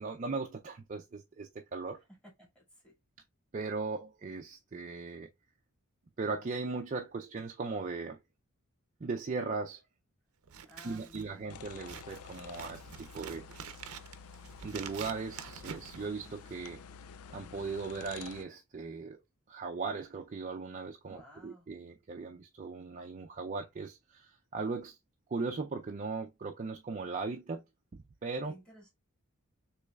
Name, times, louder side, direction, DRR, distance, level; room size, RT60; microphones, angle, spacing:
voice 1, 0.0-2.0 3.5-5.3 6.2-8.2 9.0-9.8 10.8-13.5 14.6-16.8 17.3-19.2 19.5-25.0 25.3-27.6 27.9-28.5, right 4 dB, 35° right, 0.4 m, -38 dB
voice 2, 2.1-2.9 10.6-11.6 21.1-21.7 28.5-28.9, equal, 5° left, 2.0 m, -56 dB
Scissors, 10.4-16.7, right 7 dB, 85° right, 0.6 m, -47 dB
sound 1, 11.5-18.4, left 6 dB, 80° left, 0.3 m, -50 dB
6.4 x 3.1 x 2.3 m
head